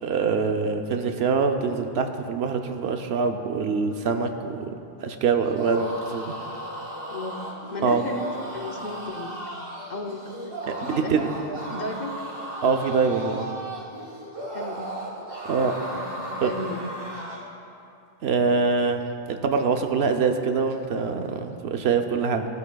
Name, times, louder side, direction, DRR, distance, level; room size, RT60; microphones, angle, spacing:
voice 1, 0.0-4.7 5.0-6.3 7.8-8.1 10.7-11.3 12.6-13.5 15.5-15.8 16.4-16.5 18.2-22.5, right 5 dB, 85° right, 6 dB, 0.9 m, -24 dB
sound 1, 5.4-17.5, right 1 dB, 65° right, 2.1 m, -36 dB
voice 2, 7.1-9.4 9.9-10.2 10.8-12.2 14.5-14.9 15.9-17.1, left 2 dB, 50° left, 3 dB, 0.8 m, -35 dB
17.5 x 8.3 x 2.3 m, 2.6 s
omnidirectional pair, 1.0 m